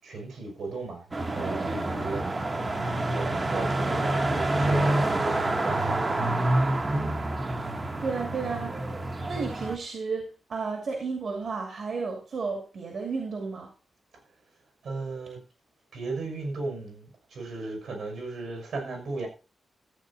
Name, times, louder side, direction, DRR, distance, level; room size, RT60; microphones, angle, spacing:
voice 1, 0.0-2.2 2.7-6.2 14.8-15.4 15.9-19.3, right 3 dB, 75° right, 4 dB, 6.1 m, -36 dB
sound 1, 1.1-9.8, right 2 dB, 25° right, 1.1 m, -27 dB
voice 2, 8.0-8.8 9.2-13.7, right 4 dB, 55° right, 3 dB, 2.4 m, -32 dB
14.0 x 8.6 x 4.1 m, 0.32 s
wide cardioid pair, 145°, 0 cm